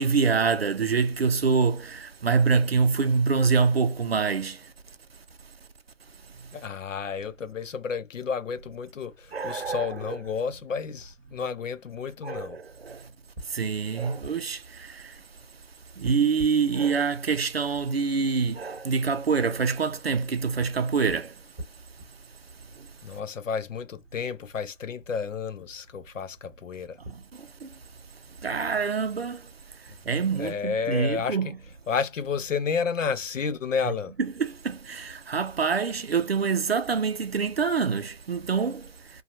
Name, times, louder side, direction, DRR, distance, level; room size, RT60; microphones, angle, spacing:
voice 1, 0.0-4.6 9.3-10.2 12.2-13.0 13.5-15.0 16.0-21.3 27.6-27.7 28.4-29.4 30.1-31.6 33.8-38.9, right 5 dB, 55° right, 0.4 m, -25 dB
voice 2, 6.5-12.6 23.0-27.0 30.4-31.4 31.9-34.1, left 6 dB, 75° left, 0.7 m, -31 dB
sound 1, 7.2-27.2, equal, 5° left, 0.8 m, -50 dB
2.8 x 2.2 x 2.4 m
figure-of-eight pair, 170°, 38 cm